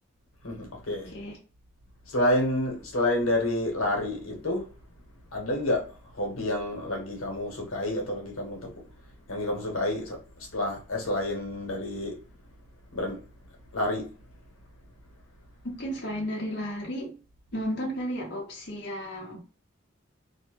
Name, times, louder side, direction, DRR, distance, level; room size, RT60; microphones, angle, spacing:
voice 1, 0.4-1.1 2.1-4.7 5.3-8.7 9.3-12.2 12.9-13.2 13.7-14.1, left 1 dB, 90° left, 1.1 m, -29 dB
voice 2, 15.6-17.2 17.5-19.4, equal, 55° left, 0.8 m, -33 dB
2.7 x 2.2 x 2.9 m
head